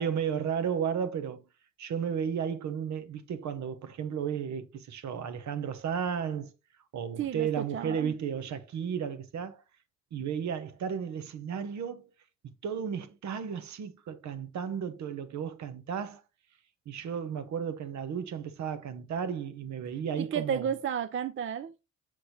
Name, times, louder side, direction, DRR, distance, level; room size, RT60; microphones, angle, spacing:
voice 1, 0.0-1.4 1.8-6.5 6.9-9.6 10.1-12.1 12.6-16.2 16.9-20.7, right 7 dB, 65° right, 1.0 m, -33 dB
voice 2, 7.2-8.1 20.2-21.7, right 8 dB, 45° right, 0.5 m, -32 dB
6.4 x 6.1 x 2.8 m
cardioid pair, 90°, 30 cm